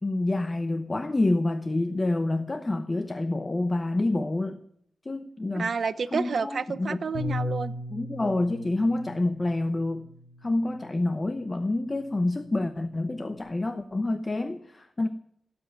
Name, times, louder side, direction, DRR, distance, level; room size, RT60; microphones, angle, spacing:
voice 1, 0.0-4.6 5.0-5.7 6.1-7.0 7.9-10.1 10.4-15.1, left 2 dB, 20° left, 0.8 m, -28 dB
voice 2, 5.5-7.7, right 5 dB, 50° right, 0.8 m, -29 dB
Bass guitar, 7.1-13.4, left 2 dB, 70° left, 4.9 m, -39 dB
18.0 x 8.0 x 9.1 m
wide cardioid pair, 145°, 0 cm